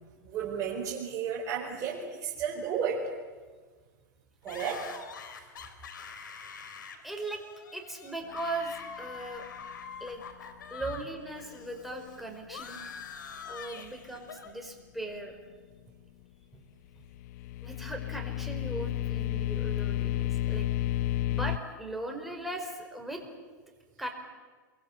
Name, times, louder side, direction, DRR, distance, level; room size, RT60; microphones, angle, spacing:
voice 1, 0.2-3.1 4.4-4.9 5.4-5.5, right 7 dB, 35° right, -4 dB, 4.9 m, -33 dB
sound 1, 4.5-11.1 11.3-14.5, left 6 dB, 90° left, 3.6 m, -45 dB
voice 2, 7.0-7.4 7.7-9.5 9.9-10.2 10.7-12.9 13.4-15.4 16.5-16.6 17.6-20.9 21.3-23.2 24.0-24.1, right 2 dB, ahead, 2 dB, 4.8 m, -39 dB
sound 2, 17.0-21.6, left 12 dB, 60° left, 0.8 m, -31 dB
28.0 x 23.5 x 8.5 m, 1.5 s
hypercardioid pair, 130°, 10 cm